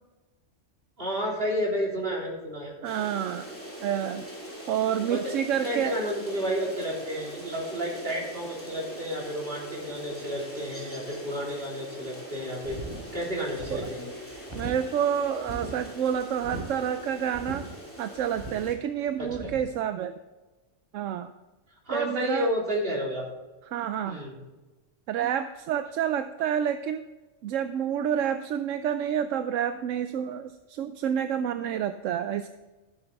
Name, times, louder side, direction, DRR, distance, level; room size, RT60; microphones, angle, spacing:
voice 1, 1.0-2.7 5.1-5.2 5.6-12.8 13.1-14.2 19.2-19.3 21.9-23.3 24.1-24.4, equal, 45° right, -3 dB, 3.7 m, -31 dB
voice 2, 2.6-3.5 3.8-4.3 4.7-6.0 13.7-13.9 14.5-17.7 18.0-20.2 20.9-21.3 21.9-22.5 23.7-24.2 25.1-27.0 27.4-32.5, right 9 dB, 80° right, 10 dB, 0.9 m, -29 dB
sound 1, 2.8-18.8, equal, 10° left, 2.7 m, -42 dB
sound 2, 12.6-19.7, right 2 dB, 20° right, 2.9 m, -41 dB
13.5 x 7.9 x 4.0 m, 1.2 s
omnidirectional pair, 1.3 m